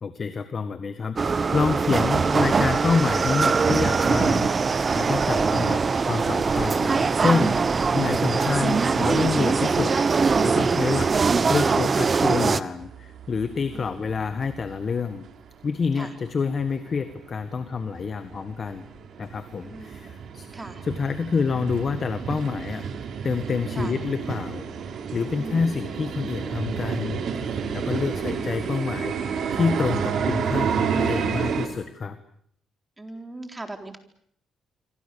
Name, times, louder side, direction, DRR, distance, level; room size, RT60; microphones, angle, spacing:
voice 1, 0.0-9.9 10.4-11.1 11.5-15.3 15.6-18.8 19.2-20.5 20.8-22.9 23.2-27.2 27.7-29.1 29.5-32.2, left 5 dB, 40° left, 10 dB, 1.7 m, -27 dB
sound 1, 1.2-12.6, right 5 dB, 35° right, 1.3 m, -22 dB
sound 2, 12.8-14.9 15.2-15.3 15.8-15.9 16.2-16.3 16.6-31.7, right 6 dB, 65° right, 3.9 m, -30 dB
voice 2, 13.7-14.1 16.0-16.1 19.6-20.1 20.5-20.8 23.7-23.9 25.3-25.9 27.9-28.5 33.0-34.0, right 2 dB, 15° right, 6 dB, 4.1 m, -40 dB
26.5 x 26.0 x 7.0 m, 0.65 s
cardioid pair, 90°, 0 cm